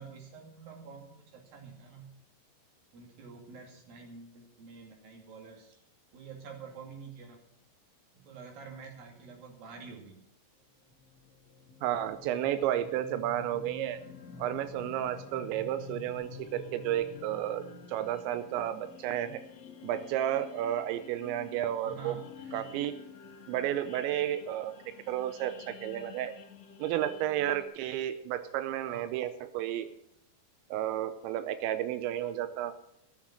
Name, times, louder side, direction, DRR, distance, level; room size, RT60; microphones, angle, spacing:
voice 1, 0.0-2.1 2.9-5.8 6.1-7.4 8.1-10.2 21.8-22.7 28.9-29.1, right 5 dB, 50° right, 3 dB, 3.7 m, -48 dB
sound 1, 10.9-27.6, left 6 dB, 85° left, 1.3 m, -49 dB
voice 2, 11.8-14.0 14.4-19.4 19.8-22.2 22.5-23.0 23.5-26.3 26.8-29.9 30.7-32.9, right 12 dB, 85° right, 11 dB, 2.6 m, -32 dB
17.0 x 7.5 x 6.3 m, 0.80 s
omnidirectional pair, 5.8 m